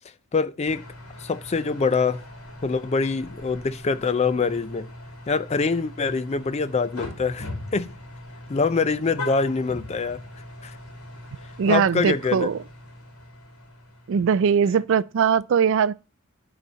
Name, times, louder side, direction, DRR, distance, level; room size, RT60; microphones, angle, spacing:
voice 1, 0.3-0.8 1.2-2.2 2.6-4.9 5.3-7.9 8.5-10.2 10.6-10.7 11.7-12.5, left 4 dB, 30° left, 0.4 m, -24 dB
sound 1, 0.7-15.0, left 2 dB, 85° left, 2.5 m, -41 dB
voice 2, 11.6-12.6 14.1-15.9, right 7 dB, 60° right, 0.3 m, -20 dB
11.0 x 4.1 x 5.6 m
head